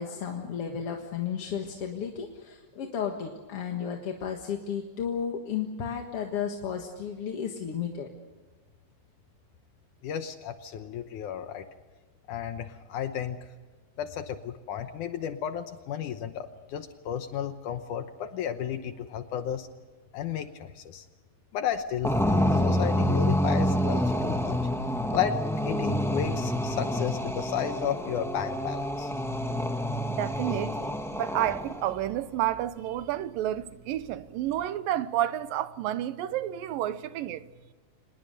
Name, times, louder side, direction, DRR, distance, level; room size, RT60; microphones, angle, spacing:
voice 1, 0.0-8.1, left 7 dB, 50° left, 2.3 m, -33 dB
voice 2, 10.0-11.7 12.3-13.4 14.0-19.7 20.1-21.1 21.5-24.6 25.1-25.4 25.7-29.1, left 9 dB, 70° left, 2.3 m, -33 dB
sound 1, 22.0-31.9, equal, 5° left, 0.3 m, -28 dB
voice 3, 30.1-37.5, right 12 dB, 85° right, 2.6 m, -30 dB
26.0 x 20.5 x 6.6 m
omnidirectional pair, 3.9 m